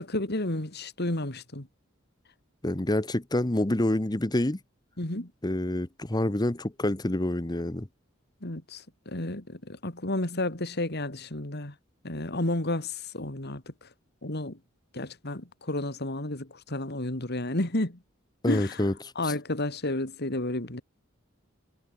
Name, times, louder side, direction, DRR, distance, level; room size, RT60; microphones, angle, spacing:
voice 1, 0.0-1.7 5.0-5.3 8.4-11.7 12.0-13.9 14.2-14.6 14.9-18.0 18.5-18.8 19.1-20.8, left 1 dB, 55° left, 3.0 m, -31 dB
voice 2, 2.6-4.6 5.4-7.9 18.4-18.9 19.2-19.3, left 1 dB, 20° left, 1.0 m, -27 dB
head